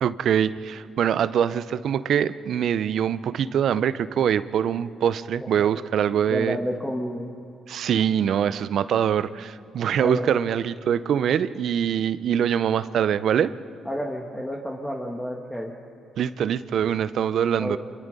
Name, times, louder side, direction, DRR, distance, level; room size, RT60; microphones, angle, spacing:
voice 1, 0.0-6.6 7.7-13.5 16.2-17.8, right 9 dB, 65° right, 15 dB, 0.7 m, -23 dB
voice 2, 6.3-7.3 10.0-10.4 13.9-15.7 17.6-17.8, equal, 5° left, 0 dB, 1.9 m, -30 dB
27.5 x 22.5 x 5.4 m, 2.6 s
cardioid pair, 90°, 0 cm